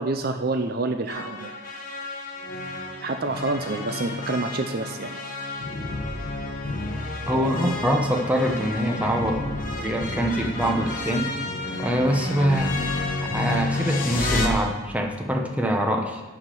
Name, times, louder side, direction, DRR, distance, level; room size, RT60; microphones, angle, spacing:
voice 1, 0.0-1.5 3.0-5.1 7.3-7.7, right 2 dB, 50° right, 6 dB, 0.5 m, -28 dB
sound 1, 1.1-14.5, left 2 dB, 40° left, 1.3 m, -30 dB
voice 2, 7.3-9.5 9.8-11.3 11.8-12.8 13.2-16.2, equal, 5° right, 2 dB, 0.9 m, -24 dB
11.0 x 5.0 x 7.6 m, 1.3 s
head